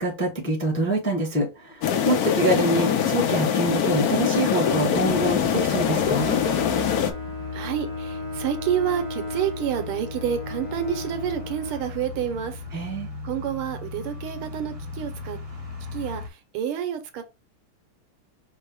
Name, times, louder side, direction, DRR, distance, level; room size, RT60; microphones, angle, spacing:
voice 1, 0.0-6.4 12.7-13.1, right 1 dB, 10° left, 0.6 m, -25 dB
sound 1, 1.8-7.1, left 8 dB, 75° left, 0.9 m, -23 dB
Bowed string instrument, 4.3-12.5, left 2 dB, 45° left, 1.3 m, -36 dB
sound 2, 4.9-16.3, left 4 dB, 60° right, 0.3 m, -37 dB
voice 2, 7.5-12.6 13.2-15.4 15.9-17.2, right 9 dB, 80° right, 1.6 m, -29 dB
5.4 x 2.1 x 4.7 m
omnidirectional pair, 2.4 m